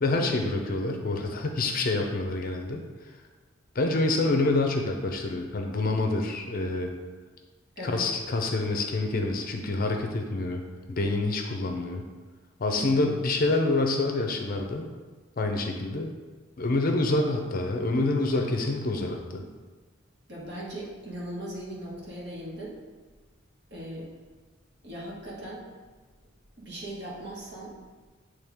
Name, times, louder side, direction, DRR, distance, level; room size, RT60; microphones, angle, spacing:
voice 1, 0.0-2.8 3.7-6.9 7.8-10.6 10.9-12.0 12.6-14.9 15.4-16.1 16.6-19.4, left 2 dB, 45° left, 3 dB, 0.6 m, -27 dB
voice 2, 12.8-13.1 20.3-22.8 23.7-24.1 24.8-25.6 26.6-27.7, right 1 dB, 55° right, -5 dB, 1.5 m, -38 dB
8.1 x 3.3 x 3.5 m, 1.4 s
head